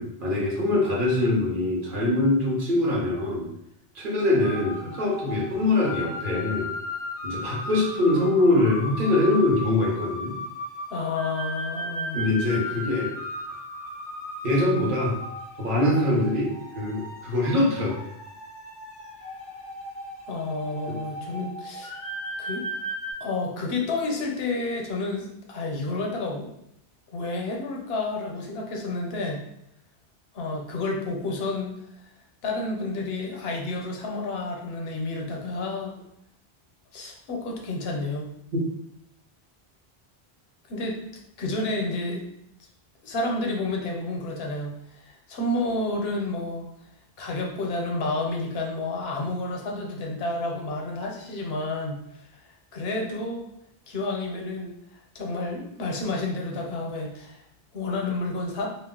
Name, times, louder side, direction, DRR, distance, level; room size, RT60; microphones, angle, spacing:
voice 1, 0.0-3.5 3.9-6.7 7.2-10.4 12.1-13.1 14.4-15.2 15.6-18.1 20.9-21.0 38.5-38.6, left 2 dB, 60° right, -3 dB, 0.9 m, -23 dB
sound 1, 4.4-23.1, left 1 dB, 45° left, 0.5 m, -36 dB
voice 2, 10.9-12.2 20.3-22.0 22.4-22.7 23.2-26.5 27.1-29.4 30.3-31.8 32.4-36.0 36.9-38.3 40.7-41.0 41.4-42.3 43.0-46.6 47.2-52.0 52.4-53.5 53.9-54.7 55.1-57.4 57.7-58.7, left 2 dB, 75° left, 0 dB, 0.8 m, -30 dB
2.3 x 2.0 x 3.6 m, 0.78 s
omnidirectional pair, 1.0 m